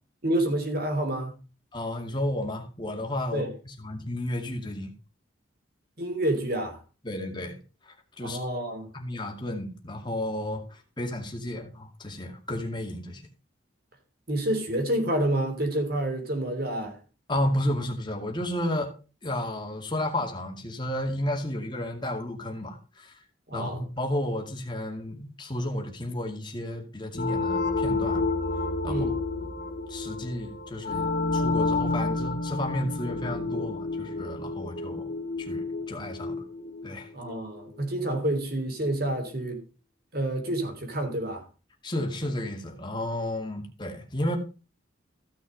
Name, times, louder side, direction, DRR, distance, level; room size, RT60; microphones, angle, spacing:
voice 1, 0.2-1.3 3.3-3.5 6.0-6.8 8.2-8.9 14.3-17.0 23.5-23.8 28.9-29.1 37.1-39.6 40.1-41.4, right 1 dB, 50° right, 3.4 m, -28 dB
voice 2, 1.7-4.9 7.0-7.6 7.8-8.4 8.9-13.2 17.3-18.9 19.2-23.2 23.5-28.3 28.8-29.1 29.4-29.5 29.9-35.1 35.4-36.4 36.8-37.1 41.8-44.4, left 1 dB, 25° left, 2.3 m, -32 dB
sound 1, 27.1-37.6, left 3 dB, 45° left, 1.9 m, -30 dB
15.0 x 6.3 x 5.2 m
head